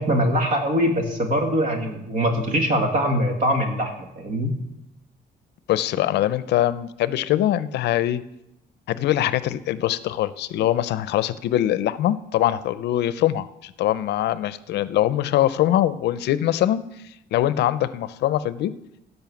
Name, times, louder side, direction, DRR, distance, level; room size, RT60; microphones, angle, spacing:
voice 1, 0.0-4.5, equal, 50° right, 4 dB, 2.1 m, -22 dB
voice 2, 5.7-8.2 8.9-16.8 17.3-18.7, left 12 dB, 80° left, 16 dB, 0.6 m, -22 dB
16.5 x 5.6 x 7.1 m, 0.86 s
cardioid pair, 160°, 17 cm